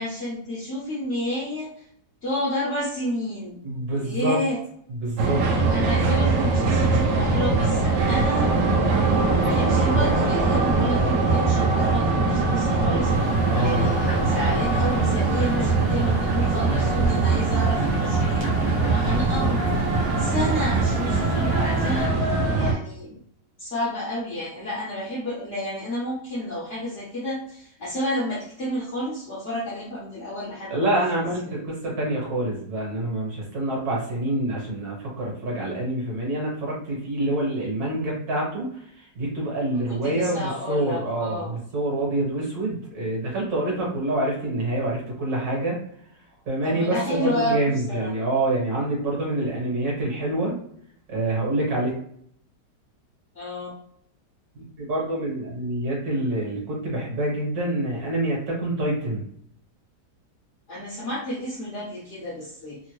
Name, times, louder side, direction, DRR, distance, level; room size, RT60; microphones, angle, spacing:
voice 1, 0.0-1.8 2.2-3.6 3.9-4.6 5.5-8.5 9.1-19.6 20.2-23.2 23.6-31.6 39.9-41.5 46.6-48.1 53.3-53.7 60.7-62.8, left 1 dB, 50° left, -7 dB, 1.1 m, -30 dB
voice 2, 3.6-4.4 5.0-5.4 13.5-13.9 18.9-19.5 30.7-45.8 46.5-50.6 51.1-51.9 54.6-59.2, right 1 dB, 65° right, -4 dB, 1.7 m, -26 dB
sound 1, 5.2-22.7, right 3 dB, 85° right, 1.3 m, -22 dB
sound 2, 13.0-22.1, left 1 dB, 35° right, 0.3 m, -37 dB
3.5 x 2.1 x 3.0 m, 0.66 s
omnidirectional pair, 1.8 m